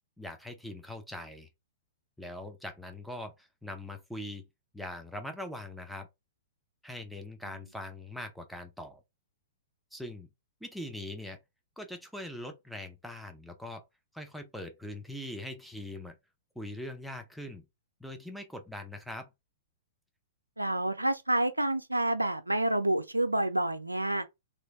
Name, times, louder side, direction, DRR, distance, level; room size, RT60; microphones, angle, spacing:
voice 1, 0.2-1.5 2.2-4.5 4.7-6.1 6.8-9.0 9.9-10.3 10.6-11.4 11.8-13.8 14.1-16.1 16.6-17.6 18.0-19.3, left 1 dB, ahead, 0.6 m, -42 dB
voice 2, 20.6-24.2, right 1 dB, 85° right, 0.5 m, -28 dB
3.1 x 2.5 x 3.5 m
figure-of-eight pair, 110°, 0 cm